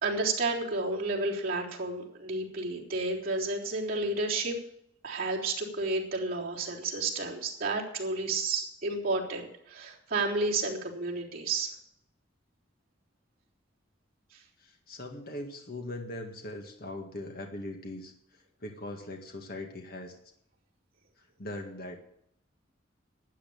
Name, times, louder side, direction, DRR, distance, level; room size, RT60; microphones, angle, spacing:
voice 1, 0.0-4.6 5.0-11.7, right 3 dB, 50° right, -5 dB, 3.6 m, -31 dB
voice 2, 14.6-18.1 18.6-20.2 21.2-22.0, left 1 dB, 50° left, 3 dB, 1.9 m, -40 dB
12.5 x 8.8 x 8.9 m, 0.72 s
head